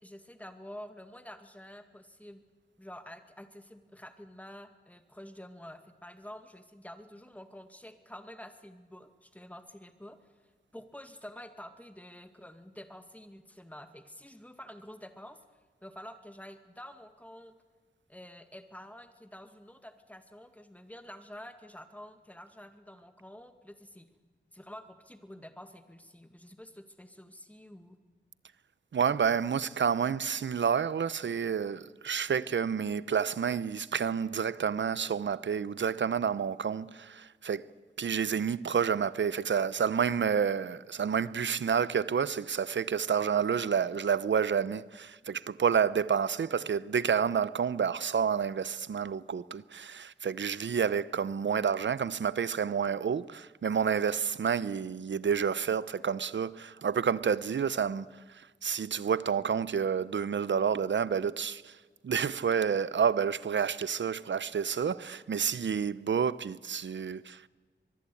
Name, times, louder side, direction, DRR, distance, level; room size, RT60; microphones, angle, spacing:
voice 1, 0.0-2.4 2.8-10.3 10.7-15.4 15.8-17.5 18.1-24.1 24.5-28.0, left 1 dB, 10° left, 2.2 m, -48 dB
voice 2, 28.9-37.7 38.0-67.5, right 7 dB, 75° right, 0.8 m, -29 dB
24.0 x 22.5 x 8.6 m
wide cardioid pair, 110°, 19 cm